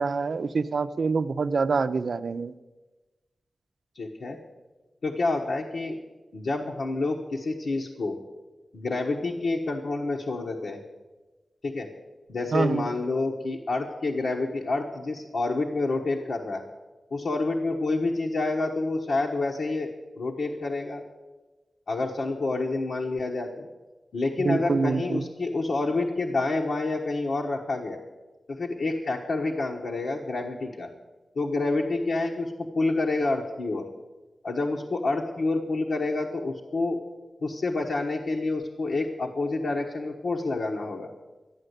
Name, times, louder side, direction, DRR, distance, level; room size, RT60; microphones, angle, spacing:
voice 1, 0.0-2.5 12.5-12.9 24.4-25.2, right 4 dB, 65° right, 12 dB, 0.5 m, -26 dB
voice 2, 3.9-4.4 5.0-6.0 6.3-8.2 8.7-10.8 11.6-11.9 12.3-16.6 17.1-19.9 20.2-21.0 21.9-23.7 24.1-28.0 28.5-30.9 31.3-33.8 34.4-37.0 37.4-41.1, left 3 dB, 75° left, 0 dB, 1.2 m, -28 dB
13.0 x 9.0 x 8.1 m, 1.2 s
wide cardioid pair, 80°, 0 cm